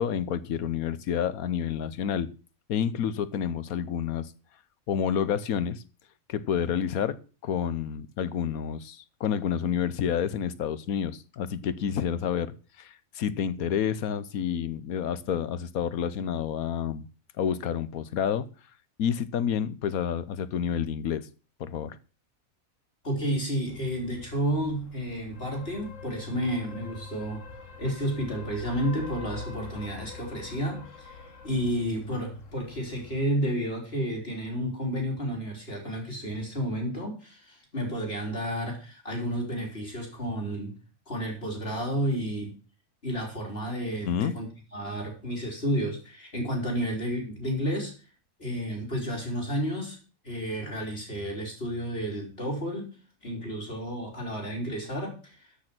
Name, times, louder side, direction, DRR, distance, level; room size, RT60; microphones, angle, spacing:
voice 1, 0.0-2.3 2.7-4.3 4.9-5.8 6.3-17.1 17.4-18.5 19.0-21.3 21.6-22.0 44.0-44.4, left 8 dB, 90° left, 1.4 m, -29 dB
voice 2, 23.0-27.4 27.8-40.7 41.1-42.5 43.0-47.9 48.4-50.0 50.2-52.9 53.2-55.5, equal, 45° left, 4.3 m, -31 dB
sound 1, 23.7-33.3, left 4 dB, 65° left, 2.0 m, -44 dB
13.5 x 6.6 x 6.1 m
omnidirectional pair, 1.5 m